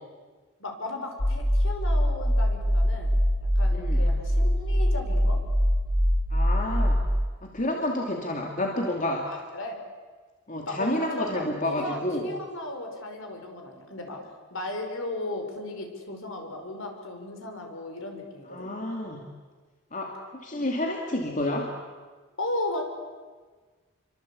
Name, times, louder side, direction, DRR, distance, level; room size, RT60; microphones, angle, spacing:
voice 1, 0.6-3.2 3.6-5.4 9.3-9.8 10.7-11.4 11.8-14.2 14.5-18.7 22.4-22.8, left 2 dB, 60° left, 4 dB, 5.3 m, -35 dB
sound 1, 1.2-7.1, equal, 75° left, 3.9 m, -23 dB
voice 2, 6.3-7.0 7.4-9.3 10.5-12.3 18.5-19.2 19.9-21.7, left 1 dB, 35° left, 1 dB, 2.6 m, -29 dB
28.5 x 24.5 x 8.6 m, 1.4 s
head